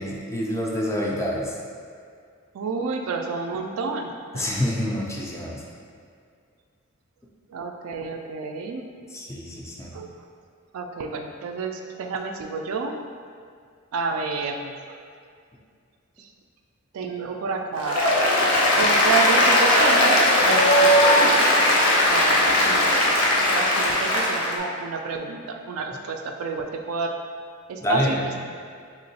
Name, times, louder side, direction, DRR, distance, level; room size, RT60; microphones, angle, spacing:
voice 1, 0.0-1.5 4.3-5.6 9.1-10.0 27.8-28.2, left 1 dB, 15° left, -2 dB, 0.3 m, -27 dB
voice 2, 2.5-4.4 7.5-8.8 9.9-10.1 10.7-12.9 13.9-15.1 16.2-16.3 16.9-18.2 18.7-21.7 22.1-23.1 23.5-27.1 27.7-28.2, right 4 dB, 75° right, 4 dB, 0.3 m, -30 dB
Applause, 17.8-24.5, left 1 dB, 85° left, 0.6 m, -18 dB
3.5 x 2.9 x 2.7 m, 2.2 s
head